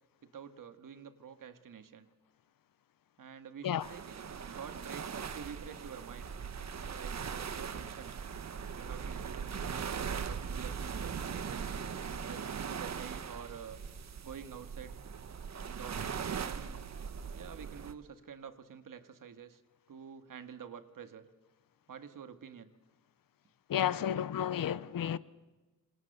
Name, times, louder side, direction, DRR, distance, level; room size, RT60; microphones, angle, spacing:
voice 1, 0.2-2.1 3.2-6.3 6.9-8.1 8.7-11.8 12.3-13.8 14.2-15.0 15.7-16.8 17.3-19.6 19.9-21.3 21.9-22.7, right 7 dB, 65° right, 1.9 m, -48 dB
sound 1, 3.8-17.9, right 6 dB, 50° right, 1.2 m, -40 dB
voice 2, 23.7-25.2, left 10 dB, 70° left, 0.8 m, -32 dB
27.0 x 26.5 x 6.9 m
wide cardioid pair, 170°, 35 cm